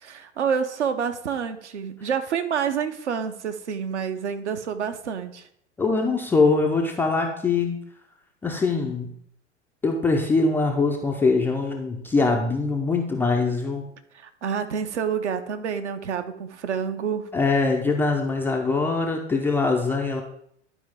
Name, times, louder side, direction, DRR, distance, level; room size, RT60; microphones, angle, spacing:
voice 1, 0.0-5.5 14.1-17.3, right 7 dB, 70° right, 8 dB, 0.9 m, -28 dB
voice 2, 5.8-7.8 8.4-9.1 9.8-13.9 17.3-20.2, left 3 dB, 5° left, 0 dB, 0.3 m, -23 dB
11.5 x 4.6 x 3.4 m, 0.70 s
figure-of-eight pair, 95°, 36 cm